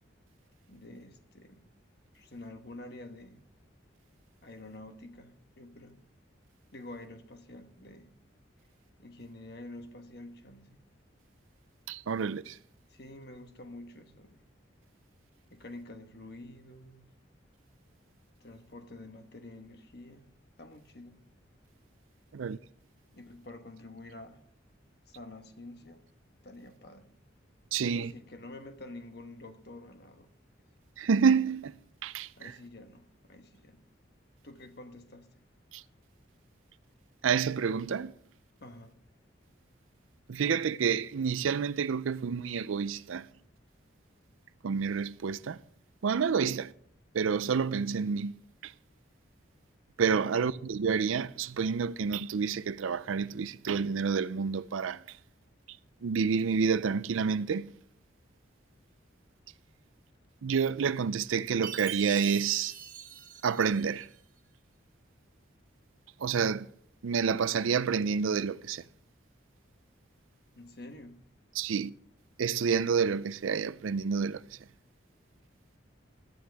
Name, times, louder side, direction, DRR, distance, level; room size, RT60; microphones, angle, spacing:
voice 1, 0.7-1.7 2.1-3.4 4.4-6.0 6.7-8.1 9.0-10.8 12.9-14.4 15.5-17.1 18.4-20.3 20.6-21.2 23.1-24.4 25.1-26.1 26.4-27.2 27.8-30.3 32.4-33.8 34.4-35.3 38.6-39.0 46.4-46.5 50.1-50.5 70.5-71.2, left 2 dB, 55° left, 1.3 m, -48 dB
voice 2, 11.9-12.6 22.3-22.6 27.7-28.1 31.0-31.7 32.0-32.5 35.7-35.8 37.2-38.1 40.3-43.3 44.6-45.6 46.0-46.7 47.1-48.3 48.6-48.7 50.0-55.0 56.0-57.7 60.4-62.7 63.4-64.1 66.2-66.7 67.0-68.8 71.6-71.9 72.4-74.4, right 6 dB, 85° right, 0.5 m, -29 dB
Chime, 61.6-64.1, right 8 dB, 45° right, 1.3 m, -43 dB
17.5 x 12.0 x 3.5 m
head